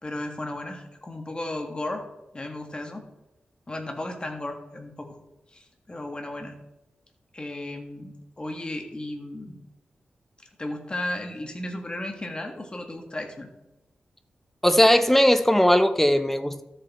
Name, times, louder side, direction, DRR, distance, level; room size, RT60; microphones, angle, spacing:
voice 1, 0.0-2.1 2.3-3.1 3.7-5.2 5.5-6.5 7.3-9.6 10.6-13.5, left 1 dB, 25° left, 4 dB, 1.8 m, -34 dB
voice 2, 14.6-16.6, equal, 5° left, 10 dB, 0.7 m, -19 dB
13.0 x 7.6 x 4.2 m, 0.95 s
wide cardioid pair, 95°, 4 cm